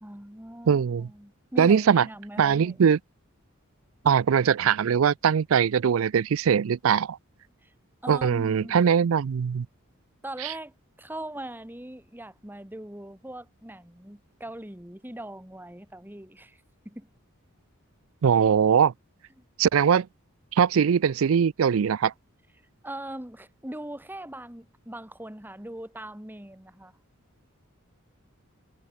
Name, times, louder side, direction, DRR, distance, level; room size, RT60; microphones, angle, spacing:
voice 1, 0.0-2.8 7.6-7.7 8.0-8.8 10.2-17.1 19.4-19.5 22.8-26.9, right 1 dB, 10° right, 2.2 m, -41 dB
voice 2, 0.7-1.1 1.6-2.1 2.4-3.0 4.0-7.2 8.1-9.7 18.2-18.9 19.6-20.1 20.5-22.1, right 7 dB, 75° right, 0.4 m, -21 dB
head